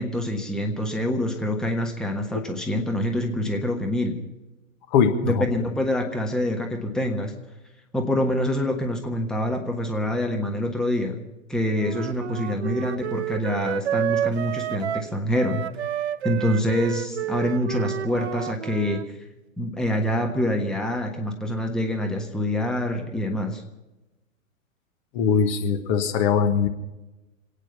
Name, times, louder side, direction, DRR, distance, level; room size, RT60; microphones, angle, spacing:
voice 1, 0.0-4.2 5.2-7.3 7.9-15.6 16.2-19.2 19.6-23.6, left 1 dB, ahead, 3 dB, 1.3 m, -26 dB
voice 2, 4.9-5.4 25.1-26.7, left 6 dB, 35° left, 6 dB, 1.3 m, -21 dB
Wind instrument woodwind instrument, 11.7-19.0, right 10 dB, 55° right, 0.6 m, -30 dB
27.0 x 9.4 x 5.6 m, 1.0 s
figure-of-eight pair, 105°, 41 cm